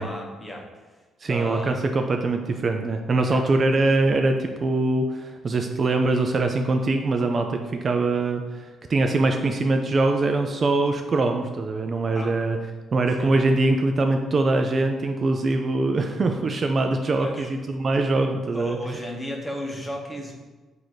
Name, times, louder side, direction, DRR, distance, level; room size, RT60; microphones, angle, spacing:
voice 1, 0.0-1.0 1.3-1.8 3.3-3.4 12.1-12.4 13.2-13.3 17.2-17.5 18.5-20.3, equal, 15° left, 0 dB, 0.8 m, -34 dB
voice 2, 1.2-12.6 12.9-17.3 17.7-18.8, right 2 dB, 40° right, 5 dB, 0.3 m, -23 dB
4.0 x 2.6 x 4.7 m, 1.3 s
cardioid pair, 90°, 0 cm